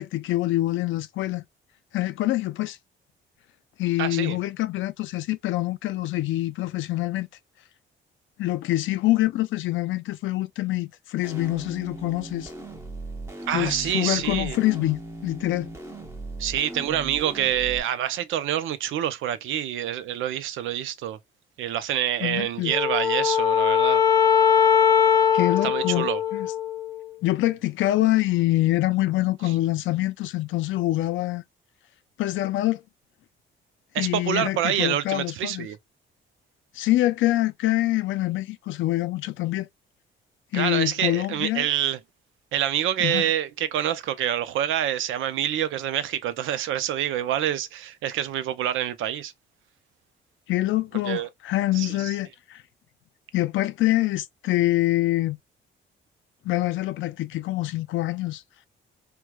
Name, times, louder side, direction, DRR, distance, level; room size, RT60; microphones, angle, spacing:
voice 1, 0.0-1.4 1.9-2.8 3.8-7.3 8.4-12.5 13.5-15.7 22.2-22.7 25.3-26.5 27.2-31.4 32.2-32.8 34.0-35.7 36.7-39.7 40.5-41.7 43.0-43.3 50.5-52.6 53.3-55.4 56.4-58.4, left 16 dB, 80° left, 0.5 m, -25 dB
voice 2, 4.0-4.4 13.5-14.6 16.4-21.2 21.6-24.0 25.6-26.2 33.9-35.8 40.5-42.0 42.5-49.3 51.1-51.3 51.7-52.1, right 11 dB, 80° right, 0.6 m, -27 dB
sound 1, 11.2-17.8, right 2 dB, 10° right, 1.0 m, -38 dB
Wind instrument woodwind instrument, 22.7-27.1, left 8 dB, 15° left, 0.6 m, -21 dB
4.5 x 2.2 x 2.3 m
cardioid pair, 90°, 20 cm